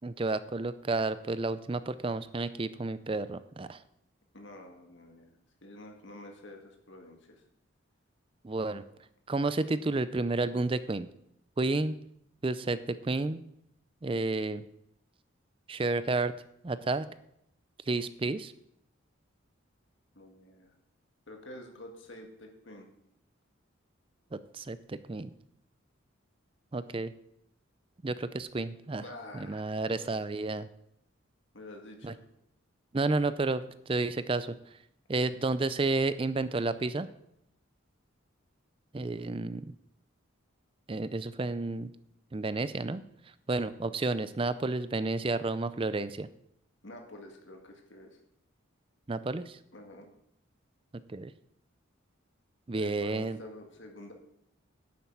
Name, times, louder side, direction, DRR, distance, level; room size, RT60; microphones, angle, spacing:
voice 1, 0.0-3.8 8.4-8.8 9.3-11.1 11.6-12.0 12.4-13.4 14.0-14.6 15.7-16.3 16.6-17.1 17.9-18.5 24.3-25.3 26.7-27.1 28.0-29.0 29.3-30.7 32.0-32.1 32.9-34.5 35.1-37.1 38.9-39.7 40.9-41.9 42.3-43.0 43.5-46.3 49.1-49.6 51.1-51.3 52.7-53.4, right 3 dB, 25° right, 14 dB, 0.4 m, -31 dB
voice 2, 4.3-7.4 20.2-20.7 21.3-22.9 29.0-30.2 31.5-32.2 46.8-48.2 49.7-50.1 52.7-54.1, left 1 dB, 65° left, 2 dB, 1.9 m, -48 dB
10.5 x 7.3 x 7.2 m, 0.76 s
head